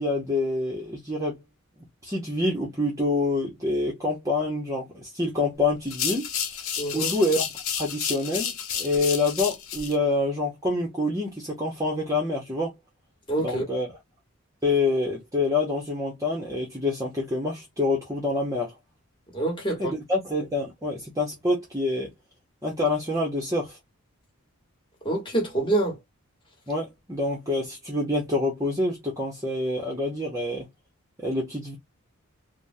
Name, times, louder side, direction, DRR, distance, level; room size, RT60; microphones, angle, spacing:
voice 1, 0.0-1.4 2.0-6.3 6.9-7.5 7.7-12.7 13.4-13.9 14.6-18.7 19.8-22.1 22.6-23.8 26.7-30.7 31.2-31.8, left 2 dB, 15° right, 0.7 m, -26 dB
sound 1, 5.8-9.9, left 8 dB, 70° left, 0.7 m, -31 dB
voice 2, 6.8-7.1 13.3-13.6 19.3-19.9 25.0-26.0, right 2 dB, 20° left, 1.2 m, -26 dB
3.5 x 2.1 x 2.6 m
head